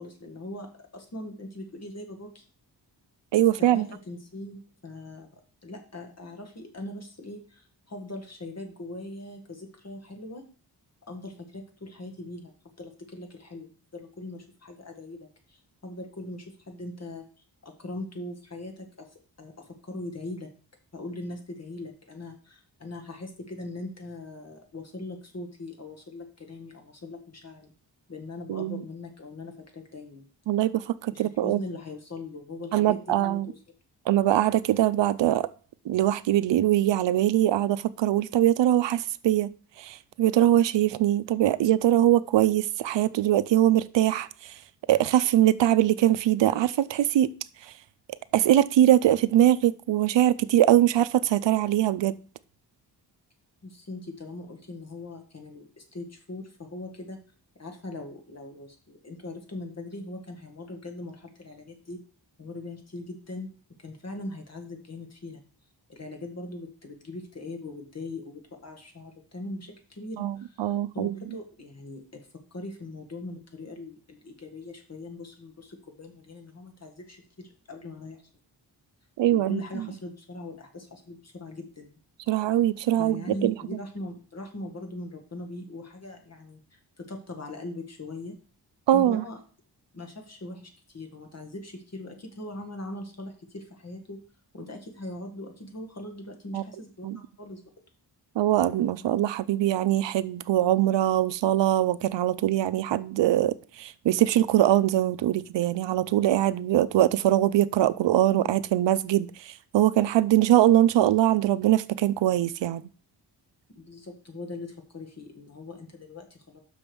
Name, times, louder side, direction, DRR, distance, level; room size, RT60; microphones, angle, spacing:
voice 1, 0.0-2.4 3.6-5.3 5.6-10.4 11.1-17.3 17.6-19.1 19.4-20.5 20.9-27.7 28.1-30.2 31.1-33.4 53.6-57.2 57.6-62.0 62.4-63.5 63.8-65.4 65.9-72.3 72.5-78.2 79.3-82.0 83.0-88.4 88.9-89.4 89.9-94.3 94.5-97.1 97.4-97.6 113.8-116.6, left 2 dB, 35° left, 1.8 m, -40 dB
voice 2, 3.3-3.9 28.5-28.8 30.5-31.6 32.7-33.5 34.1-35.5 35.9-39.5 39.8-44.3 44.9-47.3 48.3-52.2 70.2-71.1 79.2-79.6 82.3-83.5 88.9-89.2 96.5-96.6 97.0-97.2 98.4-112.8, right 13 dB, 85° right, 0.5 m, -22 dB
6.2 x 5.1 x 6.1 m
wide cardioid pair, 100°, 42 cm